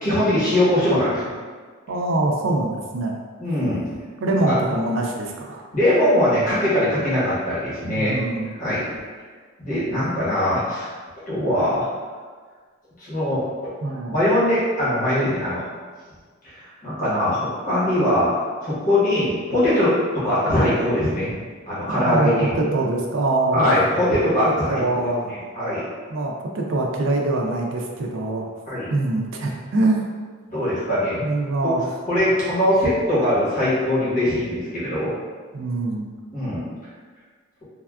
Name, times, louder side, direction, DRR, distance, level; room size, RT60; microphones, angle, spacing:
voice 1, 0.0-1.3 3.4-3.9 4.5-4.6 5.7-8.2 8.6-8.8 9.6-10.9 11.3-11.9 13.0-13.4 14.1-15.7 16.4-18.3 18.6-21.3 21.7-22.5 23.5-25.9 28.7-28.9 30.5-31.2 31.6-31.7 32.1-35.1 36.3-36.6, left 1 dB, 40° left, -10 dB, 1.1 m, -21 dB
voice 2, 1.9-3.2 4.2-5.6 8.0-8.5 13.8-14.2 21.9-23.7 24.4-25.3 26.1-28.5 28.9-30.0 31.2-31.8 35.5-36.1, right 2 dB, 65° right, 1 dB, 0.4 m, -24 dB
3.4 x 2.3 x 2.3 m, 1.5 s
head